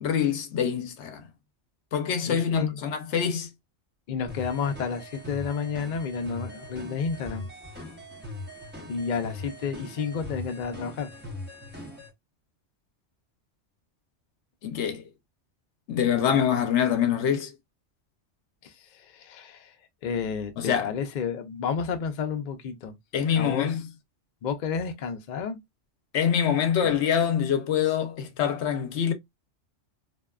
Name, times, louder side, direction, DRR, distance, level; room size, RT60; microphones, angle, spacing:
voice 1, 0.0-1.2 1.9-3.5 14.6-15.0 15.9-17.5 20.6-20.9 23.1-23.8 26.1-29.1, left 8 dB, 75° left, 0.9 m, -25 dB
voice 2, 2.2-2.8 4.1-7.5 8.9-11.1 18.6-19.7 20.0-23.0 23.4-23.8 24.4-25.6 26.8-26.9, left 6 dB, 55° left, 0.5 m, -31 dB
sound 1, 4.3-12.1, left 2 dB, 10° right, 0.8 m, -41 dB
2.7 x 2.2 x 2.2 m
omnidirectional pair, 1.2 m